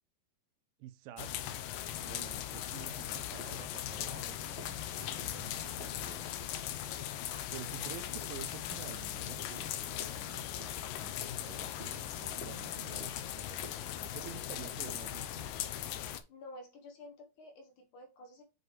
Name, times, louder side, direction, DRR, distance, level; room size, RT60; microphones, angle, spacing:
voice 1, 0.8-1.5 2.0-6.3 7.5-15.7, right 12 dB, 80° right, 2.2 m, -50 dB
sound 1, 1.2-16.2, left 11 dB, 80° left, 2.0 m, -39 dB
sound 2, 2.7-15.5, equal, 30° left, 1.1 m, -56 dB
voice 2, 16.3-18.4, left 1 dB, 60° left, 2.6 m, -51 dB
7.7 x 5.1 x 3.1 m
omnidirectional pair, 4.4 m